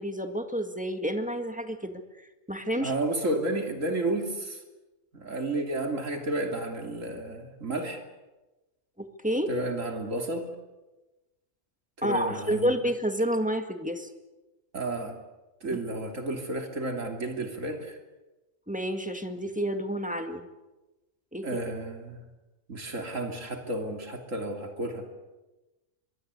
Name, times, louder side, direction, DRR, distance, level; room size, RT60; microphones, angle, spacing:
voice 1, 0.0-2.0 2.5-2.9 9.0-9.5 12.0-14.1 15.7-15.8 18.7-20.5 21.3-21.5, equal, 5° right, 6 dB, 1.9 m, -29 dB
voice 2, 2.8-4.6 5.1-8.0 9.5-10.5 12.0-12.7 14.7-15.2 15.6-18.0 21.4-22.2 22.7-25.0, right 2 dB, 75° right, 3 dB, 3.3 m, -32 dB
24.0 x 22.5 x 8.3 m, 1.1 s
omnidirectional pair, 1.4 m